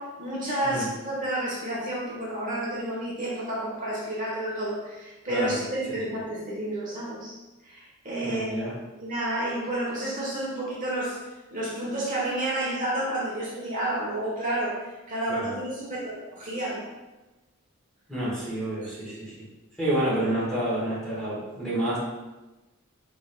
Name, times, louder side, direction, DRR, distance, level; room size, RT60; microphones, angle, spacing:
voice 1, 0.0-7.3 7.6-11.2 11.5-16.8 18.8-19.1, right 1 dB, 35° right, -6 dB, 1.1 m, -30 dB
voice 2, 8.2-8.7 15.3-15.5 18.1-19.3 19.8-22.0, right 1 dB, 5° left, -9 dB, 1.3 m, -29 dB
4.8 x 3.7 x 2.2 m, 1.1 s
head